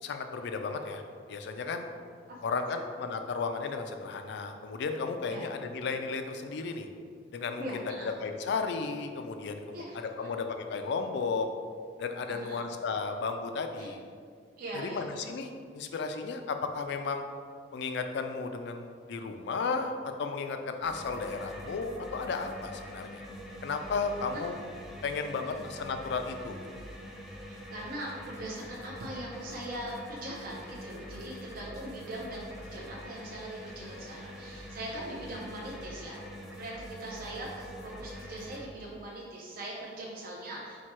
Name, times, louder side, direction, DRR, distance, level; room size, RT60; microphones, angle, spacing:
voice 1, 0.0-1.0 1.3-1.8 2.4-6.9 7.3-7.7 8.2-11.5 12.0-14.0 14.8-15.5 15.7-17.2 17.7-23.2 23.6-24.6 25.0-26.6, left 4 dB, 65° left, 6 dB, 0.4 m, -34 dB
voice 2, 7.6-8.1 9.7-10.0 12.3-12.6 13.8-13.9 14.6-15.1 24.3-24.4 25.4-25.7 27.5-36.2 36.5-40.8, right 1 dB, 50° right, -4 dB, 0.6 m, -41 dB
sound 1, 20.8-38.6, equal, ahead, 0.4 m, -45 dB
4.5 x 2.2 x 4.3 m, 2.1 s
head